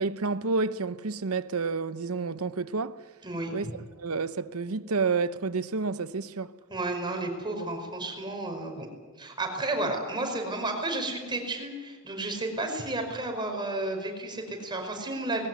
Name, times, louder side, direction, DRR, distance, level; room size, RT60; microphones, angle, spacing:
voice 1, 0.0-3.0 3.5-3.7 4.0-6.5, right 4 dB, 85° right, 0.9 m, -29 dB
voice 2, 3.2-3.7 6.7-8.9 9.2-15.5, right 2 dB, 20° right, 5.3 m, -32 dB
20.5 x 18.0 x 9.7 m
head